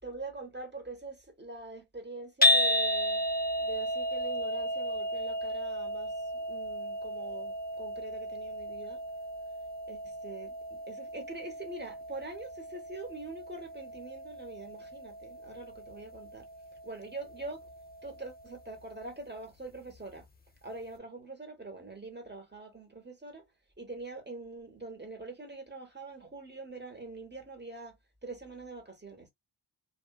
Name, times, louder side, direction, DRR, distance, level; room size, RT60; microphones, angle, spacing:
voice 1, 0.0-3.2 3.6-9.0 9.9-16.5 16.8-17.6 18.0-20.3 20.6-23.4 23.8-29.3, right 2 dB, 20° right, 1.4 m, -44 dB
sound 1, 2.4-18.6, left 1 dB, 20° left, 0.6 m, -34 dB
2.6 x 2.5 x 2.3 m
wide cardioid pair, 45°, 47 cm